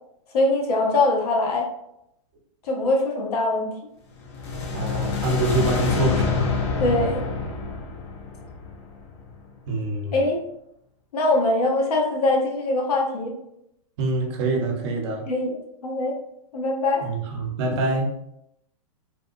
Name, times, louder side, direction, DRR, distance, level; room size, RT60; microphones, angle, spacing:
voice 1, 0.3-1.7 2.6-3.7 6.8-7.3 10.1-10.4 11.1-13.3 15.2-16.2 16.5-17.1, left 2 dB, 80° left, 0 dB, 0.9 m, -22 dB
sound 1, 4.2-9.4, left 4 dB, 45° left, 0.6 m, -26 dB
voice 2, 4.7-6.5 9.7-10.2 14.0-15.2 17.0-18.1, right 3 dB, 45° right, 1 dB, 0.8 m, -26 dB
3.4 x 2.1 x 2.5 m, 0.78 s
hypercardioid pair, 140°, 19 cm